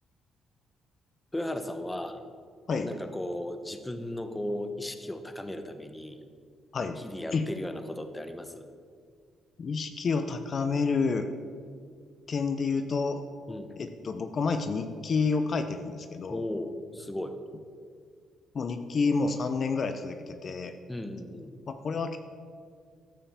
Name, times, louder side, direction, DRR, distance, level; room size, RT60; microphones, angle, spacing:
voice 1, 1.3-2.2 2.8-6.2 7.0-8.7 13.5-13.7 16.3-17.4 20.9-21.5, left 1 dB, 10° left, 8 dB, 1.0 m, -36 dB
voice 2, 9.6-11.3 12.3-13.2 13.5-16.4 18.5-20.7 21.7-22.2, left 4 dB, 50° left, 8 dB, 0.7 m, -29 dB
13.5 x 5.6 x 7.2 m, 2.1 s
cardioid pair, 90°, 0 cm